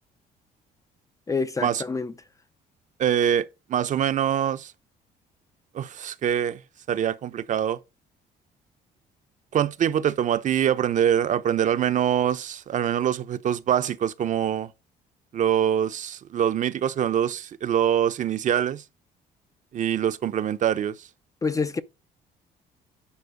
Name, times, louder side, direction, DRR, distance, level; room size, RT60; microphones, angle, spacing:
voice 1, 1.3-2.1 21.4-21.8, left 4 dB, 20° left, 0.5 m, -27 dB
voice 2, 3.0-4.7 5.7-6.6 6.9-7.8 9.5-14.7 15.3-18.8 19.7-21.0, right 9 dB, 45° right, 0.7 m, -24 dB
9.6 x 4.4 x 5.1 m
cardioid pair, 110°, 17 cm